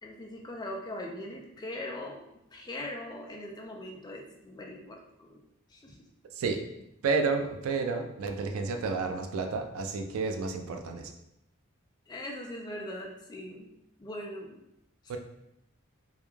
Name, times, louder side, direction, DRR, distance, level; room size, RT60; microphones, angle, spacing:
voice 1, 0.0-2.2 2.5-5.4 5.7-6.0 12.1-13.7 14.0-14.6, left 1 dB, 20° left, 0 dB, 0.3 m, -40 dB
voice 2, 6.3-6.6 7.0-11.1 15.1-15.2, right 4 dB, 85° right, 5 dB, 0.3 m, -31 dB
2.2 x 2.1 x 3.0 m, 0.82 s
head